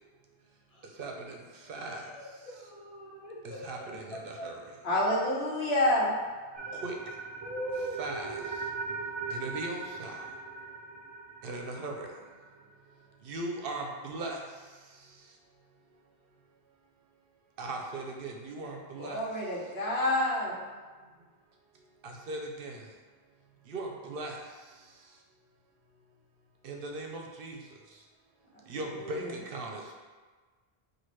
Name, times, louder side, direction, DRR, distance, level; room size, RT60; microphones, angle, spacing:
voice 1, 1.0-1.4 1.7-2.1 3.4-4.6 6.8-7.0 8.0-8.4 9.3-10.2 11.4-12.1 13.3-14.4 17.6-19.2 22.0-22.8 23.7-24.4 26.6-27.6 28.7-29.8, right 2 dB, 70° right, 1 dB, 0.8 m, -38 dB
voice 2, 1.6-3.8 4.1-4.5 6.7-6.8 7.4-8.4, right 1 dB, 40° left, -4 dB, 0.9 m, -41 dB
voice 3, 4.8-6.1 19.0-20.6 29.0-29.3, left 1 dB, 75° left, -4 dB, 1.2 m, -28 dB
sound 1, 6.5-12.7, right 4 dB, 40° right, 0.4 m, -40 dB
5.8 x 2.6 x 3.1 m, 1.4 s
omnidirectional pair, 1.0 m